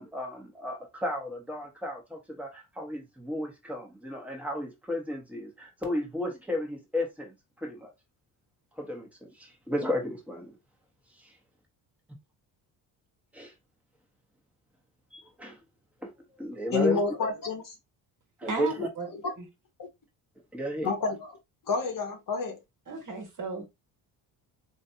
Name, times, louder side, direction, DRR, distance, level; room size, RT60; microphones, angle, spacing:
voice 1, 0.0-7.9 8.8-10.6 11.2-11.3 13.3-13.5 15.1-15.6 16.0-16.1 16.4-17.0 18.4-18.9 20.5-20.9, left 1 dB, 5° right, 1.3 m, -34 dB
voice 2, 16.7-17.7 20.8-21.2 21.7-22.6, left 4 dB, 40° left, 1.1 m, -28 dB
voice 3, 18.4-19.1 19.4-19.5 22.9-23.6, right 3 dB, 40° right, 1.5 m, -35 dB
3.2 x 2.8 x 2.7 m
cardioid pair, 90°, 48 cm